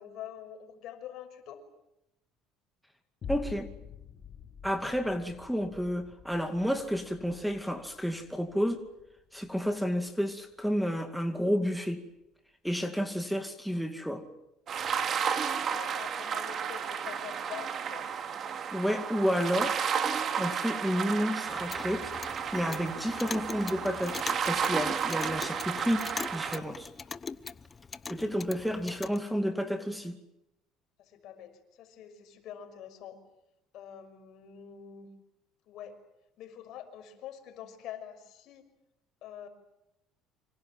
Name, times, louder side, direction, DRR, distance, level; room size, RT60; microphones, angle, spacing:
voice 1, 0.0-1.6 15.6-18.1 31.0-33.2 33.7-35.1 35.7-36.0 36.4-38.6 39.2-39.5, left 9 dB, 60° left, 7 dB, 6.1 m, -45 dB
sound 1, 3.2-11.8 12.2-12.3, left 8 dB, 40° left, 3.2 m, -48 dB
voice 2, 3.3-3.7 4.6-8.8 9.3-12.0 12.6-14.2 18.7-19.8 20.4-26.9 28.1-30.2, equal, ahead, 7 dB, 2.4 m, -31 dB
sound 2, 14.7-26.6, right 7 dB, 40° right, 2.5 m, -32 dB
Clock, 21.5-29.2, left 5 dB, 25° left, 0.9 m, -42 dB
28.5 x 25.5 x 7.7 m, 0.87 s
cardioid pair, 115°, 0 cm